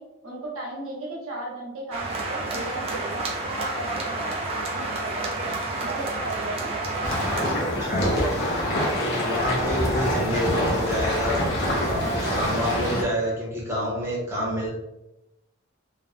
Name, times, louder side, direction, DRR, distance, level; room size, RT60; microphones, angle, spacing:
voice 1, 0.0-3.2 3.5-5.4 5.8-6.7 10.5-10.8 11.9-12.6, right 2 dB, 85° right, -3 dB, 0.9 m, -36 dB
sound 1, 1.9-7.5, right 2 dB, 30° right, 0.3 m, -29 dB
sound 2, 7.0-13.0, equal, 55° left, 0.7 m, -25 dB
voice 2, 7.4-8.4 8.8-11.3 11.8-12.1 12.3-14.7, equal, 10° right, -6 dB, 0.7 m, -28 dB
3.2 x 2.0 x 2.4 m, 0.91 s
head